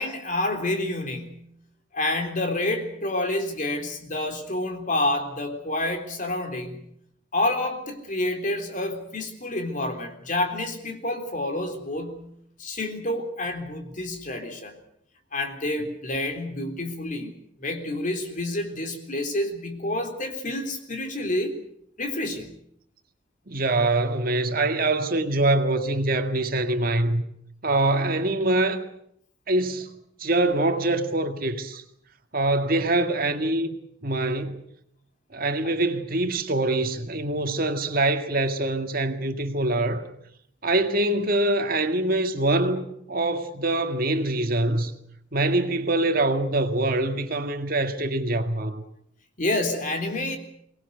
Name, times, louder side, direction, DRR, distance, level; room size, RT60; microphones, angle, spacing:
voice 1, 0.0-1.5 1.9-6.8 7.3-12.3 12.6-14.7 15.3-17.3 17.6-21.6 22.0-22.5 49.4-50.4, left 1 dB, 45° left, 3.6 m, -28 dB
voice 2, 23.5-27.2 27.6-28.8 29.5-29.9 30.2-31.8 32.3-33.8 34.0-34.6 35.3-40.1 40.6-44.9 45.3-48.8, right 2 dB, 50° right, 2.0 m, -24 dB
23.5 x 19.0 x 8.1 m
head